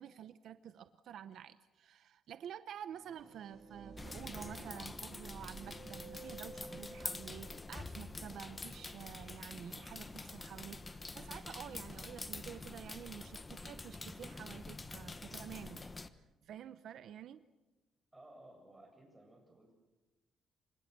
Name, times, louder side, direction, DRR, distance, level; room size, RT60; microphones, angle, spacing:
voice 1, 0.0-17.4, right 9 dB, 65° right, 12 dB, 0.8 m, -50 dB
sound 1, 3.0-7.7, right 3 dB, 30° right, 1.9 m, -52 dB
sound 2, 4.0-16.1, left 3 dB, 20° left, 1.1 m, -46 dB
voice 2, 18.1-19.8, right 1 dB, 10° right, 2 dB, 7.9 m, -58 dB
28.5 x 26.0 x 6.8 m, 1.1 s
cardioid pair, 130°, 0 cm